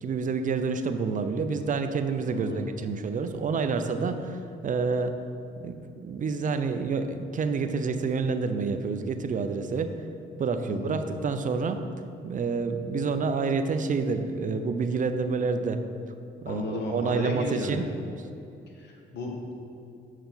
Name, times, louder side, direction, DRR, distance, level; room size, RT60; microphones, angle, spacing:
voice 1, 0.0-5.1 5.6-9.9 10.4-11.8 12.2-15.8 16.4-17.8, right 4 dB, 40° right, 8 dB, 0.4 m, -28 dB
voice 2, 2.3-2.7 10.6-11.0 16.5-17.8 18.7-19.5, left 2 dB, 60° left, 0 dB, 1.2 m, -33 dB
6.8 x 4.6 x 3.9 m, 2.7 s
cardioid pair, 90°, 20 cm